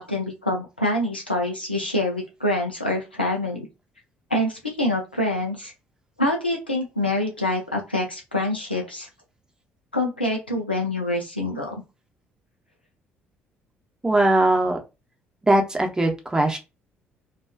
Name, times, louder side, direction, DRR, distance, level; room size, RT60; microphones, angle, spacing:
voice 1, 0.0-3.7 4.3-5.7 6.2-9.1 9.9-11.7, left 1 dB, 90° left, 0 dB, 0.4 m, -26 dB
voice 2, 14.0-14.8 15.4-16.6, right 1 dB, 15° right, 3 dB, 0.7 m, -20 dB
2.4 x 2.2 x 2.3 m, 0.27 s
figure-of-eight pair, 50°, 5 cm